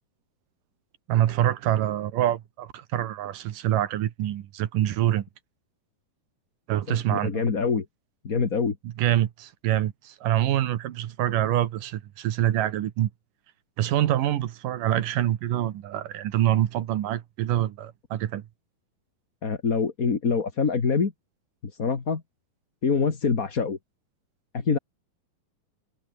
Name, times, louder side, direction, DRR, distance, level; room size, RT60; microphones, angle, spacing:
voice 1, 1.1-5.3 6.7-7.3 8.8-13.1 13.8-18.5, right 12 dB, 65° right, 2.7 m, -25 dB
voice 2, 6.9-7.8 8.2-8.8 19.4-21.1 21.8-22.2 22.8-23.8 24.5-24.8, left 5 dB, 30° left, 1.6 m, -25 dB
omnidirectional pair, 4.3 m